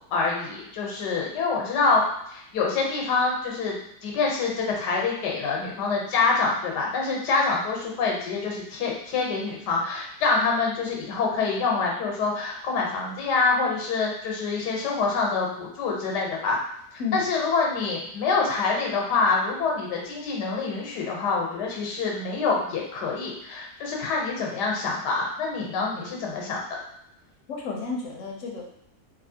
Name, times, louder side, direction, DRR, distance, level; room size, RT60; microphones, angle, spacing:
voice 1, 0.1-3.8 4.0-16.6 17.1-26.6, left 4 dB, 90° left, -1 dB, 1.4 m, -26 dB
voice 2, 27.5-28.6, left 4 dB, 65° left, -1 dB, 0.8 m, -31 dB
3.1 x 2.7 x 2.7 m, 0.73 s
omnidirectional pair, 1.7 m